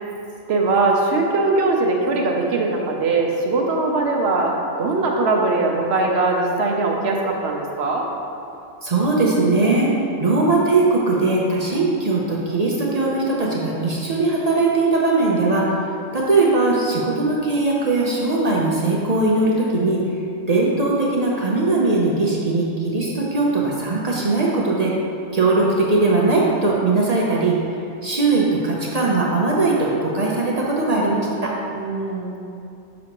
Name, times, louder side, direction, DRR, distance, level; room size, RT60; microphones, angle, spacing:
voice 1, 0.5-8.1 31.7-32.4, right 3 dB, 55° right, 0 dB, 1.0 m, -21 dB
voice 2, 8.8-9.9 10.2-15.8 16.1-20.0 20.5-24.9 25.3-27.6 28.0-31.5, right 3 dB, 40° right, -4 dB, 0.6 m, -20 dB
6.4 x 6.1 x 3.0 m, 2.6 s
omnidirectional pair, 1.4 m